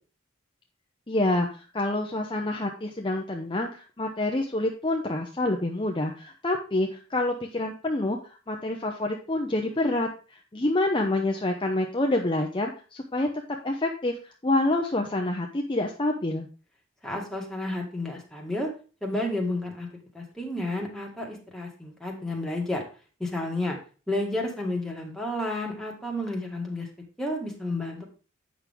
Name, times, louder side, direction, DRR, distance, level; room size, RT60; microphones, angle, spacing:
voice 1, 1.1-13.3 13.6-14.2 14.4-16.5, left 2 dB, 25° left, 1 dB, 0.7 m, -27 dB
voice 2, 17.0-18.7 19.0-19.9 20.1-22.8 23.2-23.8 24.1-26.9 27.2-28.0, left 1 dB, ahead, -1 dB, 1.8 m, -31 dB
8.7 x 6.1 x 3.6 m, 0.36 s
head